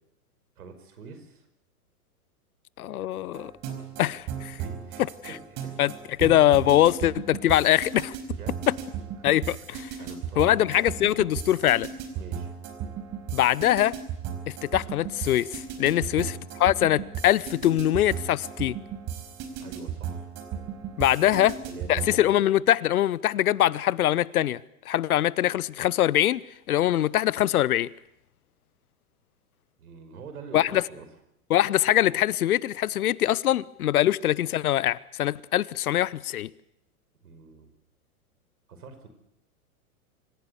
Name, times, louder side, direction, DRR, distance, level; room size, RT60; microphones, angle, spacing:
voice 1, 0.6-1.5 4.3-5.7 8.3-8.6 9.2-9.3 10.0-10.8 12.1-12.5 16.0-16.3 19.6-20.3 21.2-22.1 29.8-31.1 37.2-37.7 38.7-39.1, right 4 dB, 75° right, 5.3 m, -45 dB
voice 2, 2.8-3.5 4.0-4.6 5.8-5.9 6.2-8.1 9.2-10.0 10.4-11.9 13.3-14.0 14.5-16.3 16.6-18.8 21.0-21.5 21.9-24.6 24.9-26.4 26.7-27.9 30.5-30.8 31.5-36.5, left 13 dB, 75° left, 0.9 m, -23 dB
sound 1, 3.3-22.2, right 8 dB, 35° right, 4.8 m, -36 dB
26.0 x 16.0 x 8.1 m
hypercardioid pair, 115°, 45 cm